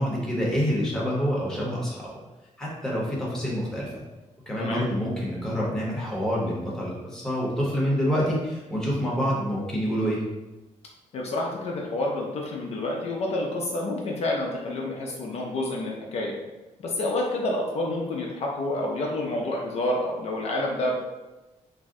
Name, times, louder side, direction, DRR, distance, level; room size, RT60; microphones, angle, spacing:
voice 1, 0.0-2.1 2.6-4.0 4.5-10.2, equal, 5° left, -5 dB, 0.8 m, -27 dB
voice 2, 11.1-16.4 16.8-20.9, left 1 dB, 55° left, -1 dB, 0.4 m, -28 dB
2.5 x 2.1 x 3.5 m, 1.1 s
wide cardioid pair, 150°, 13 cm